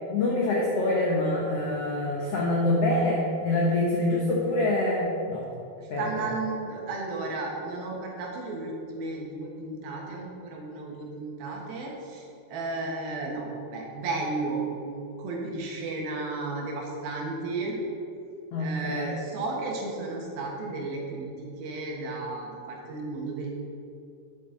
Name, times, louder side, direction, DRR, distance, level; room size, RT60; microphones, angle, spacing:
voice 1, 0.1-5.5 5.9-6.0 18.5-19.1, left 2 dB, 90° left, -3 dB, 1.3 m, -25 dB
voice 2, 5.8-17.8 18.6-23.5, right 3 dB, 75° right, -1 dB, 3.1 m, -34 dB
9.9 x 8.0 x 3.8 m, 2.6 s
omnidirectional pair, 4.4 m